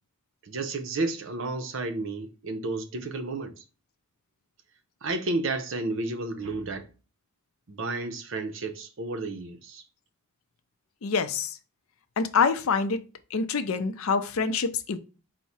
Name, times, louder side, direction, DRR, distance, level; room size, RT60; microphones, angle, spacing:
voice 1, 0.4-3.6 5.0-6.9 7.7-9.8, right 2 dB, 60° right, 0.6 m, -32 dB
voice 2, 11.0-11.6 12.2-13.0 13.3-15.0, left 5 dB, 75° left, 0.5 m, -26 dB
4.6 x 2.1 x 4.0 m
head